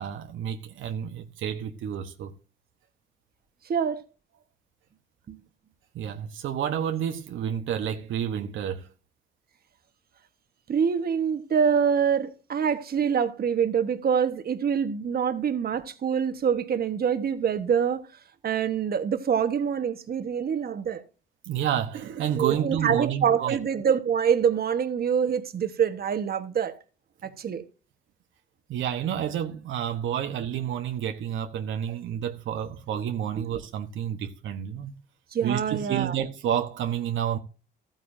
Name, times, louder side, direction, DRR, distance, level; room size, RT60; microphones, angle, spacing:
voice 1, 0.0-2.3 5.9-8.9 21.4-23.6 28.7-34.9 35.4-37.4, right 9 dB, 75° right, 1.2 m, -30 dB
voice 2, 3.7-4.0 5.3-5.4 10.7-18.0 18.4-21.0 22.4-26.8 27.2-27.6 33.4-33.5 35.3-36.1, right 7 dB, 50° right, 1.4 m, -25 dB
14.0 x 9.1 x 2.7 m
cardioid pair, 90°, 20 cm